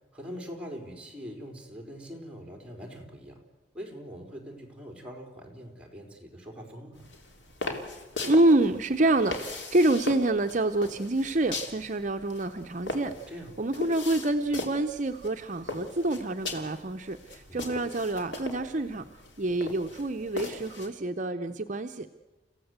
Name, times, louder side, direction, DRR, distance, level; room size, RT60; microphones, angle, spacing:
voice 1, 0.1-3.4 3.7-7.1 13.3-13.5 17.5-17.9, equal, 5° right, 2 dB, 4.5 m, -43 dB
sound 1, 6.9-20.9, left 2 dB, 85° left, 3.3 m, -39 dB
voice 2, 8.2-13.1 13.6-19.1 19.4-22.1, right 2 dB, 45° right, 7 dB, 0.7 m, -27 dB
30.0 x 16.0 x 8.1 m, 1.2 s
head